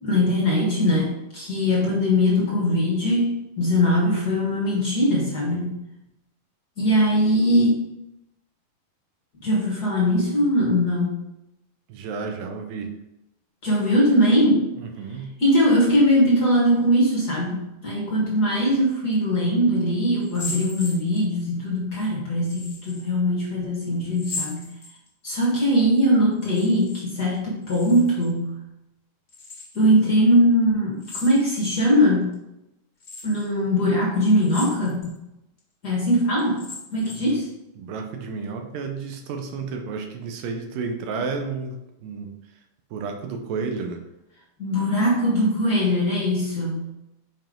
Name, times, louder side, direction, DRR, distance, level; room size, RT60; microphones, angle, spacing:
voice 1, 0.0-5.8 6.8-7.9 9.4-11.2 13.6-14.7 15.4-24.7 25.2-28.6 29.7-32.4 33.2-35.2 35.8-36.6 36.9-37.5 44.6-46.9, equal, 55° left, -4 dB, 1.1 m, -21 dB
voice 2, 11.9-12.9 14.8-15.3 37.1-37.4 37.8-42.3 42.9-44.0, right 4 dB, 75° right, 4 dB, 2.4 m, -31 dB
sound 1, 20.2-21.4 22.4-23.0 24.1-25.3 26.3-27.0 27.3-28.3 29.3-29.9 31.0-31.8 32.3-32.4 33.0-33.5 34.3-35.1 35.6-35.7 36.4-37.4, left 3 dB, 70° left, 0.6 m, -37 dB
7.1 x 5.2 x 3.8 m, 0.88 s
omnidirectional pair, 4.3 m